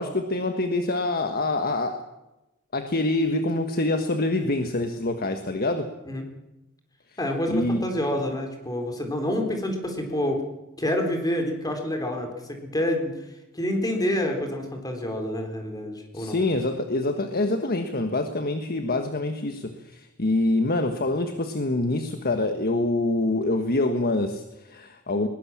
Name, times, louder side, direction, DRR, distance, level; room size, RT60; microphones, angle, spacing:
voice 1, 0.0-2.0 2.7-5.9 7.5-7.8 16.1-25.3, left 2 dB, 45° left, 7 dB, 1.4 m, -25 dB
voice 2, 7.2-10.4 10.8-13.1 13.5-16.4, left 1 dB, 15° left, 4 dB, 3.9 m, -27 dB
21.0 x 20.0 x 7.4 m, 0.97 s
head